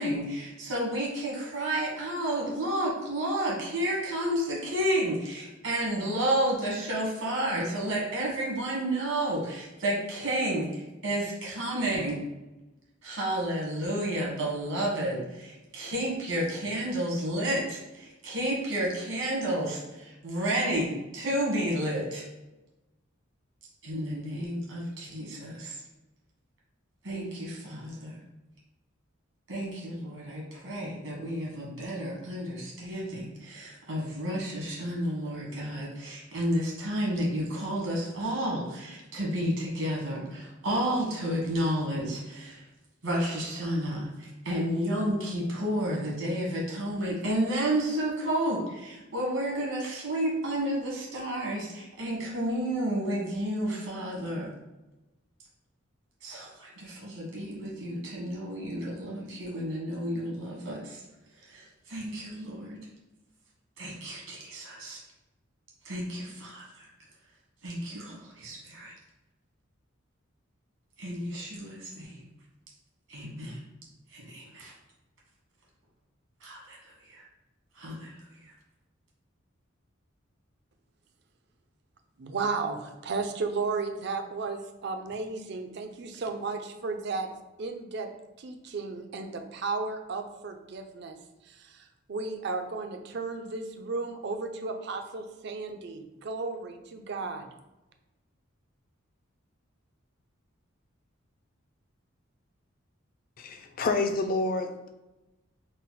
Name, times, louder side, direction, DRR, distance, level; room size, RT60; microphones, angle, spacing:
voice 1, 0.0-12.2 13.0-22.2 23.8-25.8 27.0-28.2 29.5-42.6 43.0-54.5 56.2-61.0 61.4-62.8 63.8-65.0 65.8-66.9 67.6-68.9 71.0-72.2 73.1-73.6 74.1-74.7 76.4-77.2 77.7-78.1, right 1 dB, 80° right, -3 dB, 1.4 m, -31 dB
voice 2, 82.2-87.3 87.6-88.1 88.4-91.2 91.5-97.5, right 4 dB, 55° right, 6 dB, 0.4 m, -34 dB
voice 3, 103.4-104.9, left 3 dB, 45° left, 6 dB, 0.4 m, -28 dB
4.0 x 2.1 x 4.0 m, 1.0 s
head